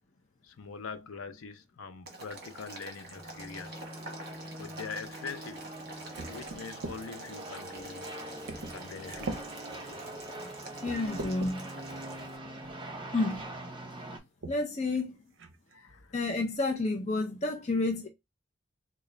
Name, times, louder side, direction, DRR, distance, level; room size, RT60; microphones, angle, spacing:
voice 1, 0.4-3.8 4.6-5.6 6.3-8.1 8.7-9.4 10.3-10.6 12.8-12.9 15.7-16.1, left 5 dB, 90° left, 0.6 m, -43 dB
Boiling, 2.1-12.4, right 2 dB, 50° right, 1.0 m, -47 dB
sound 1, 3.2-14.2, right 1 dB, 25° right, 0.6 m, -43 dB
sound 2, 6.1-7.0 7.7-7.8 8.5-8.8 9.1-9.5 10.1-10.2 10.8-11.5 12.6-12.7 13.2-13.5 14.4-14.6 15.0-15.1 15.4-15.7, right 2 dB, 65° right, 0.6 m, -40 dB
voice 2, 10.8-11.7 13.1-13.4 14.5-15.1 16.1-18.1, left 2 dB, 35° left, 0.4 m, -30 dB
3.8 x 2.2 x 3.2 m
head